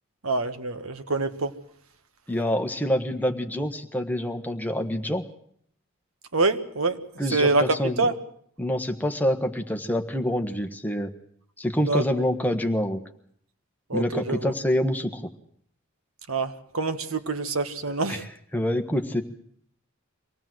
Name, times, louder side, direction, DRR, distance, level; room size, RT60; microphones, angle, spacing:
voice 1, 0.2-1.5 6.3-7.0 7.3-8.1 11.9-12.0 13.9-14.5 16.3-18.2, right 3 dB, 85° right, 9 dB, 1.5 m, -25 dB
voice 2, 2.3-5.2 7.2-8.1 8.6-11.1 11.6-13.0 13.9-15.2 17.9-18.3 18.5-19.2, equal, 10° left, 6 dB, 1.4 m, -26 dB
25.0 x 17.5 x 7.8 m, 0.65 s
head